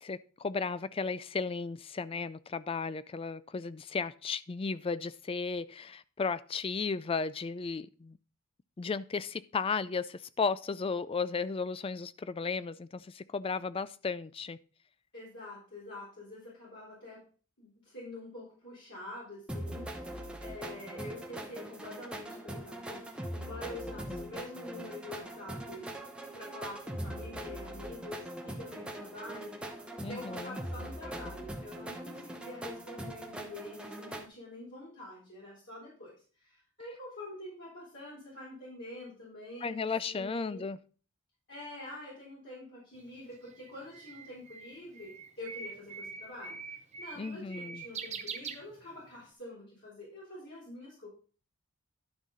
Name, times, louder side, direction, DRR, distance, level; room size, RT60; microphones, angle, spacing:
voice 1, 0.0-8.2 8.8-14.6 24.1-24.3 30.0-30.6 39.6-40.8 47.2-47.8, left 4 dB, 25° left, 16 dB, 0.3 m, -35 dB
voice 2, 15.1-17.2 17.6-25.9 26.3-29.6 30.1-40.7 41.5-51.1, left 1 dB, 55° left, -7 dB, 3.9 m, -46 dB
sound 1, 19.5-34.3, right 1 dB, 5° right, 0.9 m, -41 dB
Bird, 43.0-49.2, right 5 dB, 30° right, 0.7 m, -44 dB
11.5 x 6.2 x 4.0 m, 0.39 s
head